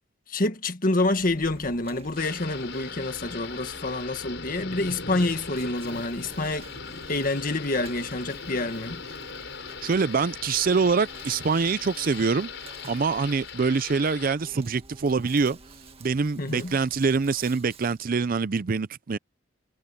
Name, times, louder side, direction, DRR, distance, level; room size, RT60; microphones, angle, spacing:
voice 1, 0.3-6.7 7.1-9.0 16.4-16.8, left 2 dB, 45° left, 1.7 m, -27 dB
Insect, 1.0-18.0, right 2 dB, 30° right, 1.9 m, -49 dB
Thunder / Rain, 2.2-14.3, left 5 dB, 65° left, 7.1 m, -40 dB
voice 2, 9.8-12.5 12.9-15.6 16.0-19.2, right 5 dB, 45° right, 0.5 m, -25 dB
head